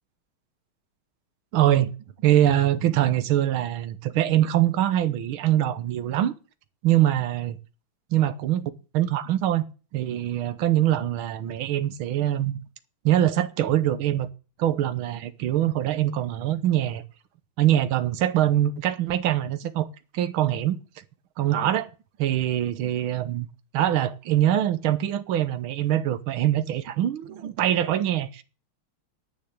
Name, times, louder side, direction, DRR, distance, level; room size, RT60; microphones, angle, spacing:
voice 1, 1.5-1.9 2.2-6.3 6.8-7.6 8.1-9.6 9.9-12.5 13.1-14.3 14.6-17.0 17.6-19.9 20.1-20.8 21.4-21.9 22.2-23.5 23.7-28.4, right 12 dB, 75° right, 1.8 m, -23 dB
10.5 x 6.5 x 8.0 m
omnidirectional pair, 2.3 m